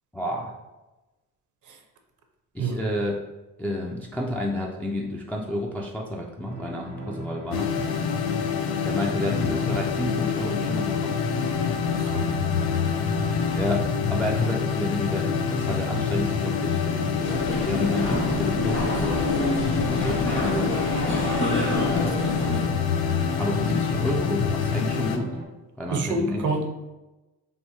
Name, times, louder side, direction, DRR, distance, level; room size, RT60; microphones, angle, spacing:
voice 1, 0.1-0.5 2.5-3.3 3.6-7.7 8.8-11.1 11.4-11.5 13.5-19.4 19.9-20.9 23.4-25.4 25.8-26.5, left 1 dB, 5° left, -1 dB, 0.3 m, -30 dB
sound 1, 6.5-25.5, right 1 dB, 65° right, 1.0 m, -36 dB
sound 2, 7.5-25.2, left 6 dB, 60° left, 0.5 m, -26 dB
voice 2, 12.0-12.3 22.0-22.6 25.9-26.7, right 3 dB, 45° right, 4 dB, 0.6 m, -29 dB
sound 3, 17.2-22.6, left 1 dB, 90° left, 1.1 m, -28 dB
3.4 x 2.2 x 2.8 m, 1.1 s
hypercardioid pair, 55°, 43 cm